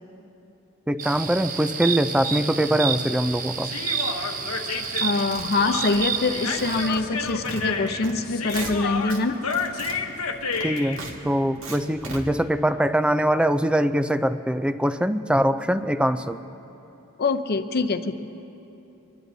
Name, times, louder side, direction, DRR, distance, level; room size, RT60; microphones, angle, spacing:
voice 1, 0.9-3.7 10.6-16.4, equal, 5° right, 11 dB, 0.4 m, -23 dB
sound 1, 1.0-6.9, right 6 dB, 40° right, 0.6 m, -30 dB
Human voice, 3.6-11.0, left 5 dB, 75° left, 1.1 m, -30 dB
sound 2, 4.7-6.3 6.6-8.1 8.4-9.2 9.5-12.2, right 3 dB, 65° right, 1.9 m, -38 dB
voice 2, 5.0-9.4 17.2-18.1, left 3 dB, 45° left, 9 dB, 0.7 m, -24 dB
25.5 x 20.0 x 2.7 m, 3.0 s
head